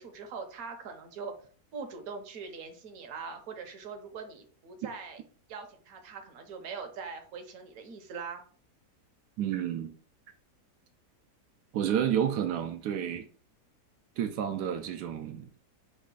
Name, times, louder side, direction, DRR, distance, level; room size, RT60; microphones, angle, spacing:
voice 1, 0.0-1.3 1.7-5.2 5.5-8.4, right 5 dB, 65° right, 1.2 m, -42 dB
voice 2, 9.4-10.0 11.7-13.3 14.2-15.5, right 9 dB, 85° right, 1.2 m, -30 dB
4.2 x 3.2 x 3.7 m
omnidirectional pair, 1.7 m